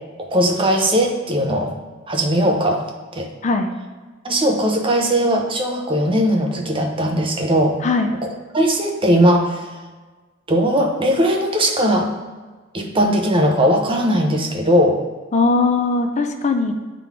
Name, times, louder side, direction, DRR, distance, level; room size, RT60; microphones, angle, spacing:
voice 1, 0.2-1.7 2.1-2.8 3.1-3.3 4.2-7.8 8.5-9.6 10.5-12.1 12.7-15.0, equal, 25° right, 2 dB, 0.7 m, -18 dB
voice 2, 15.3-16.7, left 3 dB, 35° left, 6 dB, 0.4 m, -19 dB
8.7 x 3.8 x 3.5 m, 1.3 s
head